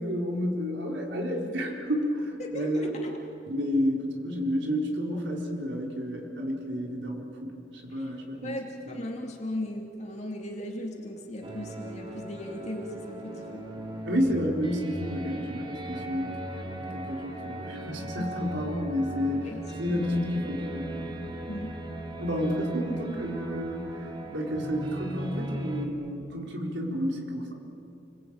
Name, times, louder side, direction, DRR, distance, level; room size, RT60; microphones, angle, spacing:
voice 1, 0.0-3.0 3.5-8.6 8.9-9.0 14.0-21.1 22.2-27.5, equal, 75° right, 0 dB, 4.3 m, -31 dB
voice 2, 2.4-3.1 8.0-8.1 8.4-13.7 18.2-18.3 19.4-19.6 19.9-20.0 21.5-21.8, left 1 dB, 35° left, 0 dB, 2.9 m, -37 dB
sound 1, 11.4-25.9, right 1 dB, 25° right, 2.4 m, -38 dB
29.0 x 21.5 x 8.9 m, 2.8 s
head